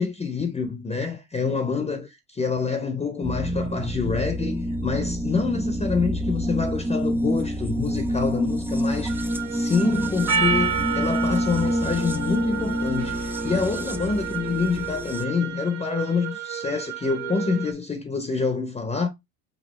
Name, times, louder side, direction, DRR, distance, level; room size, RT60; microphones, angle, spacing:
voice 1, 0.0-19.1, left 5 dB, 15° left, 0.7 m, -27 dB
sound 1, 3.2-15.2, equal, 5° right, 0.3 m, -27 dB
sound 2, 9.1-17.7, right 10 dB, 80° right, 0.8 m, -35 dB
Percussion, 10.3-14.9, right 6 dB, 40° right, 0.9 m, -29 dB
5.3 x 2.6 x 3.1 m
hypercardioid pair, 80°, 41 cm